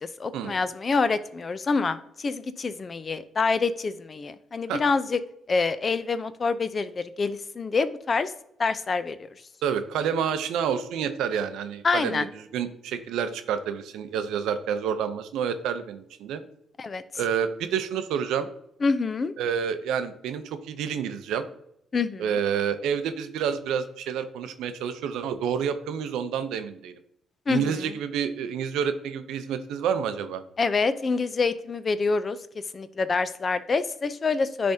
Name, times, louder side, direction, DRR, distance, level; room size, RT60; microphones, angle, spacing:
voice 1, 0.0-5.2 5.5-8.3 8.6-9.3 11.8-12.3 16.8-17.0 18.8-19.3 21.9-22.4 27.5-28.0 30.6-32.4 32.7-34.7, left 4 dB, 35° left, 13 dB, 0.4 m, -26 dB
voice 2, 9.6-16.4 17.2-18.5 19.4-21.4 22.2-26.9 27.5-30.4, right 7 dB, 85° right, 10 dB, 0.5 m, -29 dB
10.0 x 3.4 x 2.7 m, 0.75 s
cardioid pair, 90°, 0 cm